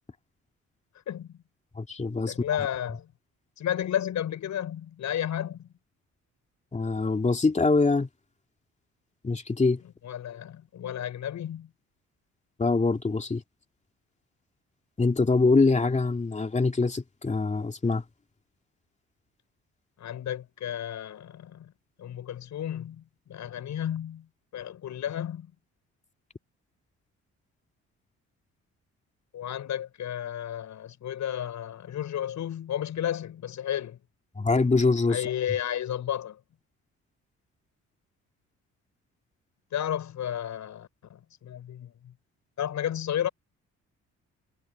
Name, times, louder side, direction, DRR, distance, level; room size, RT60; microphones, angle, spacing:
voice 1, 1.1-1.4 2.3-3.1 3.6-5.7 10.0-11.7 20.0-21.7 22.0-24.3 24.5-25.5 29.3-34.0 35.1-36.4 39.7-42.1 42.6-43.3, left 10 dB, 70° left, 7.2 m, -32 dB
voice 2, 1.8-2.3 6.7-8.1 9.2-9.8 12.6-13.4 15.0-18.0 34.4-35.2, left 3 dB, 25° left, 2.8 m, -24 dB
cardioid pair, 90°, 30 cm